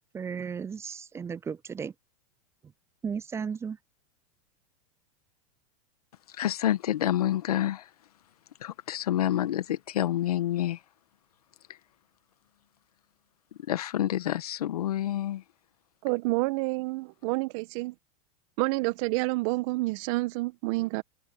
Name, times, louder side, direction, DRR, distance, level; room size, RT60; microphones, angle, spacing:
voice 1, 0.1-1.9 3.0-3.8, right 6 dB, 15° right, 0.3 m, -35 dB
voice 2, 6.3-7.9 8.6-10.8 13.7-15.4, left 12 dB, 80° left, 1.5 m, -28 dB
voice 3, 16.0-17.9 18.6-21.0, right 23 dB, 60° right, 1.6 m, -28 dB
hypercardioid pair, 105°, 19 cm